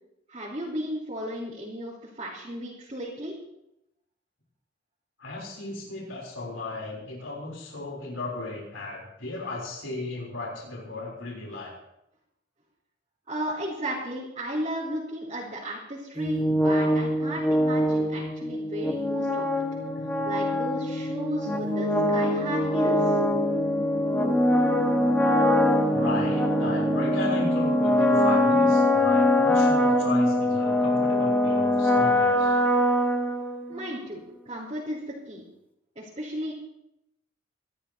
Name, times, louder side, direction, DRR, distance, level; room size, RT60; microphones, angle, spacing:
voice 1, 0.3-3.4 13.3-19.5 20.2-23.2 33.7-35.5 36.0-36.5, equal, 30° right, -7 dB, 4.1 m, -34 dB
voice 2, 5.2-11.7 19.9-20.3 25.9-32.6, left 2 dB, 85° left, -2 dB, 3.8 m, -35 dB
sound 1, 16.2-33.8, left 1 dB, 10° left, 1.6 m, -23 dB
27.5 x 13.0 x 2.9 m, 0.82 s
head